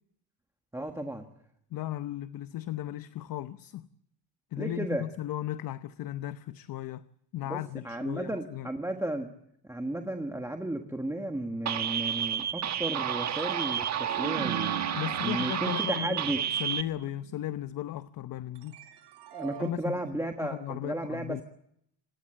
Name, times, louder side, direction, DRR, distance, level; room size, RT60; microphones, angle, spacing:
voice 1, 0.7-1.3 4.6-5.0 7.5-9.3 9.7-14.8 15.2-16.4 19.3-21.4, right 1 dB, 5° right, 1.5 m, -34 dB
voice 2, 1.7-3.9 4.5-7.1 7.3-8.7 15.0-18.8 19.6-21.4, left 13 dB, 55° left, 0.8 m, -36 dB
sound 1, 11.7-16.8, right 9 dB, 40° right, 1.5 m, -31 dB
sound 2, 13.4-17.6 18.6-19.7, right 9 dB, 80° right, 4.2 m, -41 dB
26.5 x 20.0 x 7.6 m
cardioid pair, 145°, 41 cm